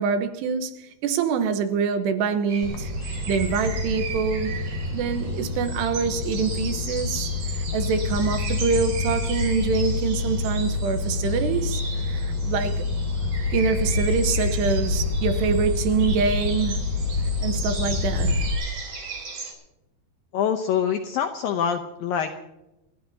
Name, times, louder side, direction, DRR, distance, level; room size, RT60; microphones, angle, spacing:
voice 1, 0.0-2.9 3.3-4.6 4.9-12.8 13.5-16.8 17.4-18.4, right 5 dB, 75° right, 3.1 m, -25 dB
sound 1, 2.5-19.5, right 4 dB, 55° right, 5.2 m, -37 dB
sound 2, 2.6-18.5, left 3 dB, 60° left, 2.0 m, -27 dB
voice 2, 20.3-22.3, left 8 dB, 80° left, 2.0 m, -25 dB
29.5 x 13.5 x 2.8 m
omnidirectional pair, 5.0 m